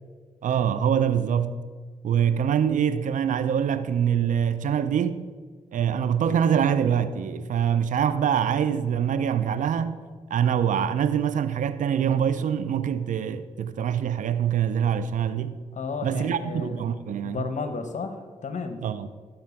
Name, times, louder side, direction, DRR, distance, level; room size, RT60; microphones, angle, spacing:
voice 1, 0.4-1.6 2.0-5.3 5.7-10.0 10.3-15.6 16.0-17.4 18.8-19.1, right 8 dB, 70° right, 0.5 m, -24 dB
voice 2, 15.7-16.8 17.2-18.8, left 4 dB, 60° left, 0.9 m, -33 dB
12.0 x 4.3 x 5.7 m
cardioid pair, 55°, 14 cm